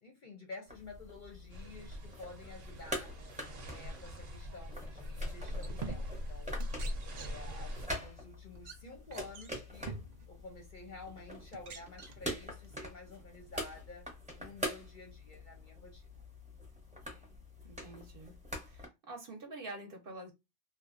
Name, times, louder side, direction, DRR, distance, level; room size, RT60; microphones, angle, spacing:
voice 1, 0.0-3.2 3.7-6.6 7.1-16.1, left 3 dB, 50° left, 0.6 m, -51 dB
sound 1, 0.7-18.9, equal, 5° right, 0.7 m, -45 dB
sound 2, 1.5-7.9, left 1 dB, 90° right, 1.1 m, -41 dB
sound 3, 5.1-5.2 5.5-6.3 6.6-7.6 7.9-8.1 8.5-8.7 9.1-10.3 11.0-11.1 11.5-12.8, right 5 dB, 70° right, 0.4 m, -46 dB
voice 2, 17.6-18.4 18.6-20.3, right 2 dB, 55° right, 0.8 m, -47 dB
2.9 x 2.1 x 2.4 m
omnidirectional pair, 1.3 m